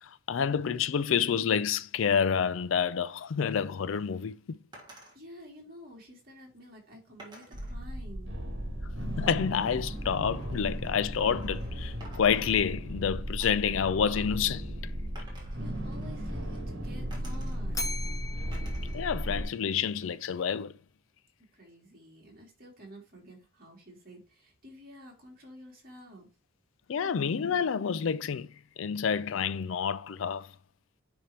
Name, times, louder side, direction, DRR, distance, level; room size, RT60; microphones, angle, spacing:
voice 1, 0.0-4.6 9.2-14.8 18.9-20.7 26.9-28.5 28.8-30.5, left 7 dB, 75° left, 0.4 m, -28 dB
sound 1, 4.7-5.2 7.2-7.8 9.3-11.7 12.0-13.0 13.4-13.7 15.1-16.6 17.1-17.8 18.5-19.0 19.4-20.2, right 1 dB, 20° right, 1.6 m, -53 dB
voice 2, 5.1-8.3 15.2-17.9 21.5-26.3, equal, 45° right, 2.4 m, -50 dB
sound 2, 7.5-19.4, equal, 65° right, 1.9 m, -36 dB
Bell, 17.7-20.0, left 2 dB, 15° left, 0.5 m, -40 dB
9.9 x 3.4 x 2.9 m
head